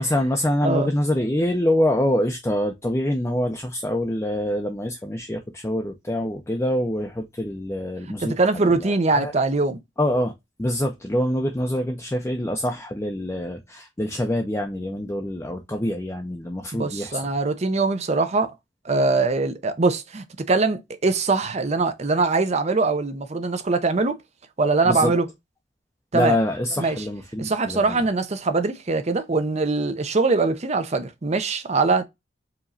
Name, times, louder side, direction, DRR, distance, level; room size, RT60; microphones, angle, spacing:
voice 1, 0.0-9.3 10.0-10.3 10.6-17.2 24.9-25.1 26.1-28.0, left 1 dB, 15° left, 0.5 m, -25 dB
voice 2, 0.6-0.9 8.2-9.8 16.7-18.5 18.8-24.2 24.6-25.3 26.1-26.4 26.8-27.0 27.4-32.0, right 3 dB, 35° right, 0.6 m, -22 dB
4.8 x 3.0 x 2.6 m
head